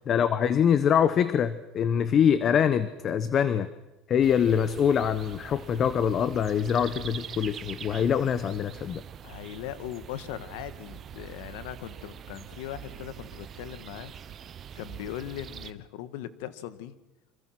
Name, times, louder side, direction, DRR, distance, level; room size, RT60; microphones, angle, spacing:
voice 1, 0.1-3.7 4.1-9.0, left 8 dB, 35° left, 13 dB, 1.0 m, -24 dB
sound 1, 4.2-15.7, right 9 dB, 35° right, 1.0 m, -44 dB
voice 2, 9.2-14.3 14.7-16.9, left 12 dB, 85° left, 13 dB, 1.8 m, -39 dB
27.0 x 26.0 x 6.1 m, 0.98 s
cardioid pair, 145°, 0 cm